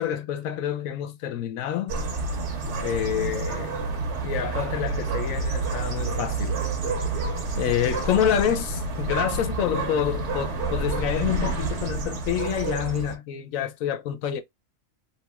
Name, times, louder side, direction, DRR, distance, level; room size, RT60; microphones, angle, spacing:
voice 1, 0.0-2.0 2.8-3.7 4.2-6.6 7.6-14.4, left 10 dB, 85° left, 1.0 m, -27 dB
sound 1, 1.9-13.2, right 3 dB, 60° right, 1.1 m, -29 dB
2.9 x 2.9 x 2.2 m
omnidirectional pair, 1.4 m